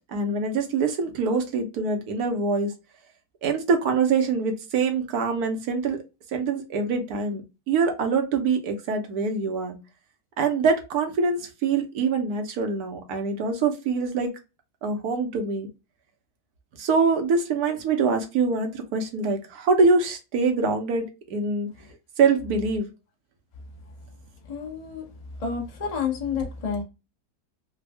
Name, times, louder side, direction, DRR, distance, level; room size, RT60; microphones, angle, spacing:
voice 1, 0.1-2.7 3.4-6.0 6.3-9.8 10.4-14.3 14.8-15.7 16.8-21.7 22.2-22.9, right 4 dB, 75° right, 1.3 m, -24 dB
voice 2, 24.5-25.0 25.4-26.8, left 6 dB, 30° left, 0.8 m, -29 dB
3.4 x 2.3 x 3.3 m
omnidirectional pair, 1.7 m